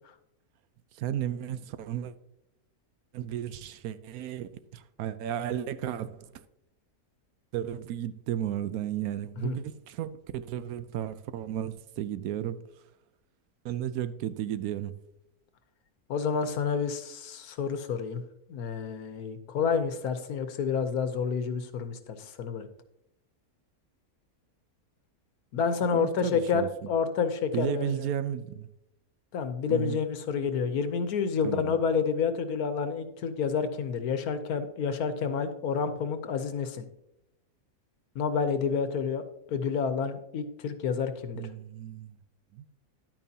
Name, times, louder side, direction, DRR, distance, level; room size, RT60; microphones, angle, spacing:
voice 1, 1.0-2.1 3.1-6.3 7.5-12.7 13.6-14.9 25.9-26.9 27.5-28.7 29.7-30.0 31.4-31.8 41.4-42.1 42.5-42.6, right 10 dB, 80° right, 1.1 m, -34 dB
voice 2, 16.1-18.2 18.5-22.7 25.5-28.1 29.3-36.8 38.1-39.2 39.5-41.5, left 6 dB, 80° left, 1.4 m, -29 dB
11.0 x 8.8 x 2.8 m
omnidirectional pair, 1.6 m